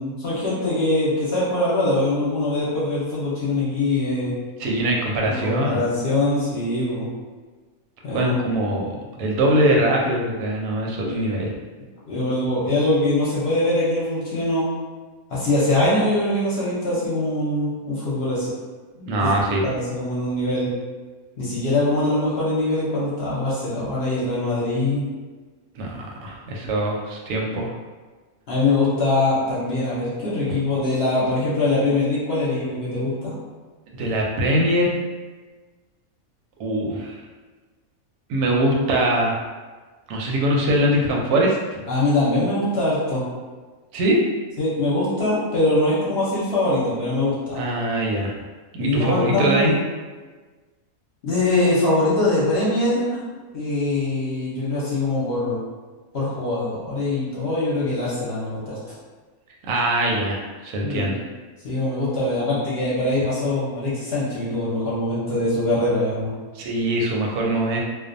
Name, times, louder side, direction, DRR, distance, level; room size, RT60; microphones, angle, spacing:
voice 1, 0.0-4.3 5.3-7.1 8.0-8.6 11.0-11.3 12.1-14.6 15.3-18.5 19.2-19.3 19.6-20.7 21.4-25.0 28.5-33.3 41.9-43.3 44.6-47.6 48.8-49.8 51.2-53.2 53.5-55.6 56.1-58.8 60.8-61.1 61.6-66.3, left 2 dB, 55° left, -8 dB, 0.8 m, -23 dB
voice 2, 4.6-5.8 8.1-11.5 19.0-19.6 25.7-27.7 33.9-35.0 36.6-37.2 38.3-39.3 40.1-41.8 43.9-44.2 47.5-48.3 48.7-49.7 59.6-61.3 66.5-67.8, right 1 dB, 85° right, -1 dB, 1.1 m, -22 dB
2.4 x 2.2 x 2.5 m, 1.4 s
omnidirectional pair, 1.5 m